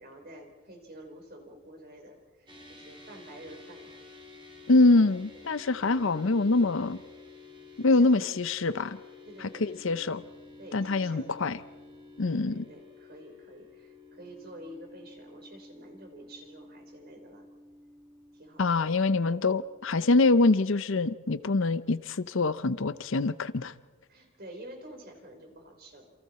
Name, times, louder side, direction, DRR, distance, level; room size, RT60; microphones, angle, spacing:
voice 1, 0.0-3.9 6.5-6.8 7.8-8.3 9.3-9.7 10.6-11.4 12.2-17.5 18.3-18.8 24.1-26.1, right 1 dB, 45° right, 4 dB, 4.0 m, -49 dB
sound 1, 2.5-19.9, left 3 dB, 20° right, 4.1 m, -51 dB
voice 2, 4.7-7.0 7.8-9.0 9.4-10.2 10.7-11.6 12.2-12.6 18.6-23.7, left 3 dB, 55° left, 14 dB, 0.6 m, -24 dB
29.0 x 28.0 x 4.3 m, 1.3 s
head